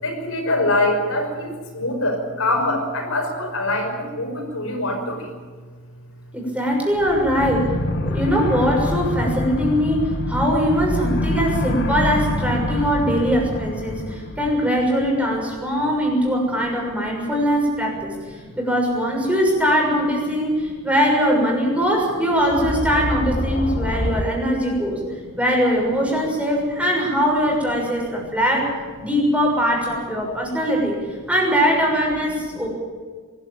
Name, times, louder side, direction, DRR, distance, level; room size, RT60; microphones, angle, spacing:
voice 1, 0.0-5.3 18.4-18.5, left 1 dB, 70° left, 2 dB, 5.9 m, -24 dB
voice 2, 6.3-25.0 25.4-28.7 29.0-31.0 31.3-32.7, equal, 5° right, -1 dB, 6.6 m, -21 dB
sound 1, 6.9-15.5 22.4-24.2, left 1 dB, 50° left, 1.7 m, -26 dB
23.0 x 15.5 x 9.2 m, 1.5 s
head